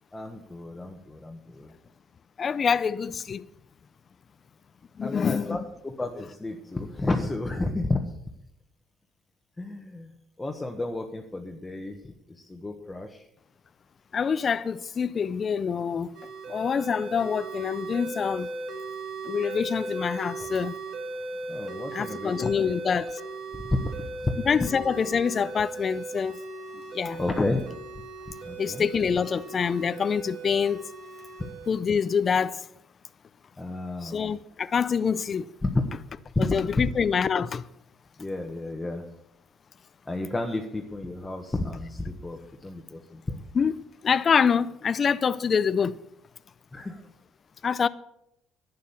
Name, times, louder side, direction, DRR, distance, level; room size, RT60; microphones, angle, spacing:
voice 1, 0.1-1.7 5.0-8.0 9.6-10.1 10.4-13.3 21.5-22.7 23.7-23.8 24.2-24.3 27.2-27.8 28.4-28.8 33.6-34.2 35.6-35.7 36.3-36.5 38.2-39.1 40.1-43.4 46.7-47.0, left 2 dB, 15° left, 1.2 m, -31 dB
voice 2, 2.4-3.4 5.0-5.6 14.1-16.2 16.5-18.5 19.2-20.8 21.9-23.1 24.5-26.4 26.9-27.2 28.6-30.8 31.7-32.7 34.0-35.5 36.4-37.7 43.5-43.8 44.0-46.0 47.6-47.9, left 6 dB, 35° left, 0.4 m, -26 dB
sound 1, 16.1-31.7, right 3 dB, 65° right, 2.5 m, -38 dB
11.5 x 9.5 x 7.0 m
cardioid pair, 115°, 0 cm